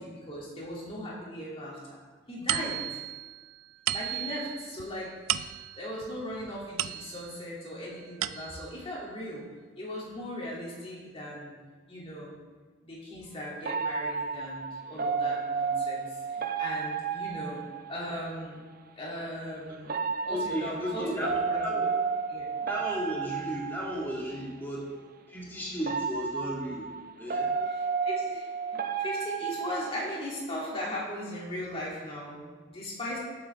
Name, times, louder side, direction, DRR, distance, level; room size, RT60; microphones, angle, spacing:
voice 1, 0.0-2.0 2.3-3.0 3.9-5.1 5.8-9.4 9.8-11.5 11.9-12.4 12.8-17.6 17.9-18.6 19.0-21.8 22.3-22.5 28.0-33.2, equal, 30° left, -6 dB, 2.9 m, -38 dB
sound 1, 2.5-7.5 7.9-8.8, right 12 dB, 90° right, 0.4 m, -35 dB
sound 2, 13.7-18.3 19.8-24.5 25.8-30.4, right 5 dB, 45° right, 0.6 m, -32 dB
voice 2, 20.3-22.0 22.7-24.9 25.3-27.5, equal, 10° left, -5 dB, 2.0 m, -35 dB
16.0 x 7.7 x 3.6 m, 1.4 s
head